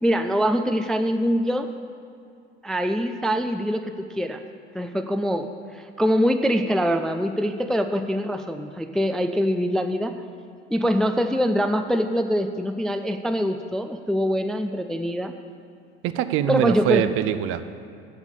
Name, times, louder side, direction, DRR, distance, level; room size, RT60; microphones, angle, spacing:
voice 1, 0.0-1.7 2.6-4.4 4.7-10.2 10.7-15.3 16.5-17.0, equal, ahead, 7 dB, 0.3 m, -24 dB
voice 2, 16.0-17.8, right 11 dB, 45° right, 12 dB, 0.5 m, -23 dB
7.8 x 7.2 x 8.3 m, 2.4 s
figure-of-eight pair, 65°, 30 cm